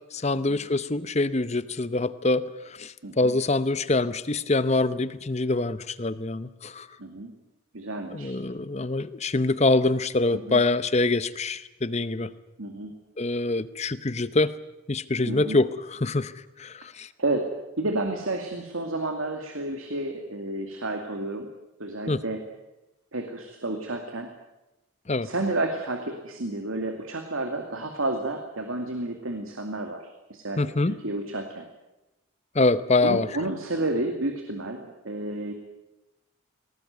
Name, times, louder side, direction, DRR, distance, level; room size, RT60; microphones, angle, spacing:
voice 1, 0.1-6.9 8.1-12.3 13.2-14.5 14.9-17.1 22.1-22.2 25.1-25.3 30.6-31.0 32.5-33.3, left 2 dB, 30° left, 15 dB, 0.8 m, -25 dB
voice 2, 7.0-7.3 7.7-8.3 10.3-10.6 12.6-12.9 15.3-15.6 17.2-17.5 17.8-21.5 21.8-22.4 23.1-24.3 25.2-31.6 33.0-35.5, right 2 dB, 75° right, 4 dB, 2.4 m, -31 dB
20.5 x 19.0 x 9.4 m, 0.96 s
head